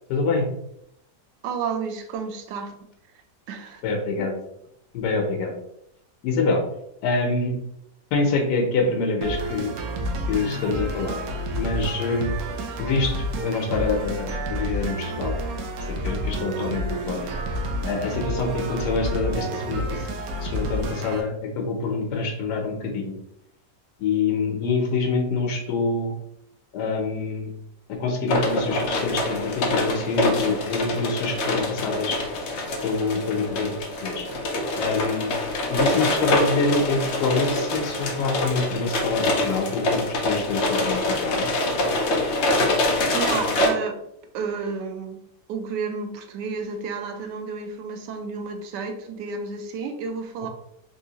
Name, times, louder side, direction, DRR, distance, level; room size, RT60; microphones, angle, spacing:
voice 1, 0.1-0.5 3.8-4.3 4.9-5.5 6.2-6.6 7.0-7.6 8.1-9.7 10.3-11.2 11.5-12.3 12.8-15.3 15.9-17.3 17.8-20.0 20.4-23.1 24.0-26.1 26.7-27.5 28.0-32.2 32.8-33.7 34.0-34.3 34.8-35.4 35.7-41.5, left 3 dB, 85° left, 2 dB, 1.3 m, -26 dB
voice 2, 1.4-2.8 3.5-3.8 4.2-4.3 43.1-44.0 44.3-45.2 45.5-50.5, right 5 dB, 90° right, 6 dB, 1.2 m, -31 dB
sound 1, 9.2-21.2, equal, 70° right, 1.0 m, -29 dB
sound 2, 28.3-43.7, left 1 dB, 60° left, 0.7 m, -25 dB
3.5 x 2.7 x 2.8 m, 0.77 s
omnidirectional pair, 1.8 m